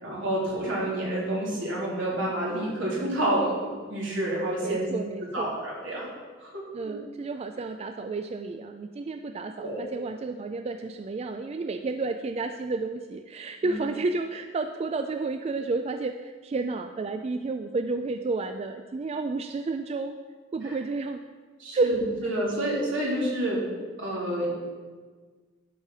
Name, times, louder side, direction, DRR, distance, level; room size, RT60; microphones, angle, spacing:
voice 1, 0.0-4.9 5.3-6.1 6.4-6.9 9.6-9.8 13.6-13.8 20.6-20.8 21.6-23.6 24.0-24.5, right 1 dB, 75° right, -5 dB, 3.2 m, -29 dB
voice 2, 4.6-5.6 6.7-20.2 20.5-21.2 21.7-21.9, right 3 dB, 35° right, 7 dB, 0.3 m, -31 dB
11.5 x 4.8 x 5.6 m, 1.5 s
head